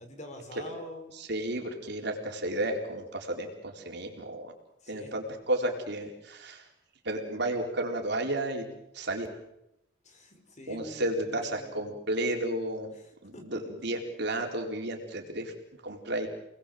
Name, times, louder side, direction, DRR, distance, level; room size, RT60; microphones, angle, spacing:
voice 1, 0.0-1.1 4.8-5.1 10.0-12.0 13.3-13.4, left 1 dB, 35° left, 5 dB, 5.0 m, -45 dB
voice 2, 1.1-4.5 4.9-6.7 7.0-8.7 8.9-9.3 10.7-12.9 13.2-15.5 15.8-16.3, right 1 dB, 60° right, 2 dB, 4.4 m, -32 dB
29.5 x 20.5 x 7.8 m, 0.87 s
head